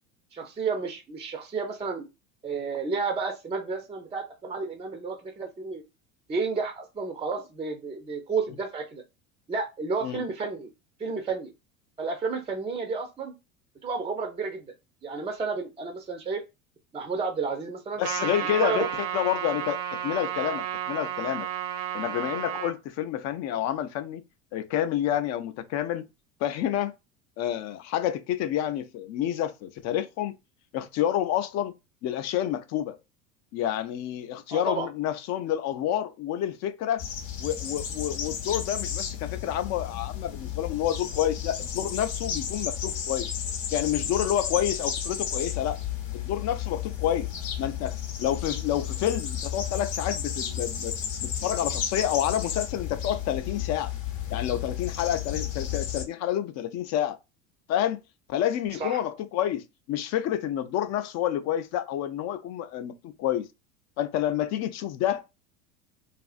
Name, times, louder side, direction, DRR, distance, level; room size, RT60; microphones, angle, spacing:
voice 1, 0.3-2.0 2.4-5.8 6.3-9.0 9.5-10.7 11.0-11.5 12.0-13.3 13.8-14.7 15.0-16.4 16.9-18.0 18.4-18.9 34.5-34.9 58.8-59.0, right 4 dB, 15° right, 0.4 m, -31 dB
voice 2, 18.0-21.5 21.9-24.2 24.5-26.1 26.4-26.9 27.4-30.3 30.7-31.7 32.0-33.0 33.5-37.0 37.4-43.3 43.7-45.8 46.1-47.3 47.6-53.9 54.3-57.2 57.7-58.0 58.3-63.5 64.0-65.2, left 11 dB, 40° left, 0.4 m, -29 dB
Trumpet, 18.0-22.7, right 10 dB, 70° right, 0.7 m, -32 dB
sound 1, 37.0-56.0, left 9 dB, 60° left, 0.8 m, -33 dB
2.5 x 2.5 x 2.4 m
hypercardioid pair, 85°, 41 cm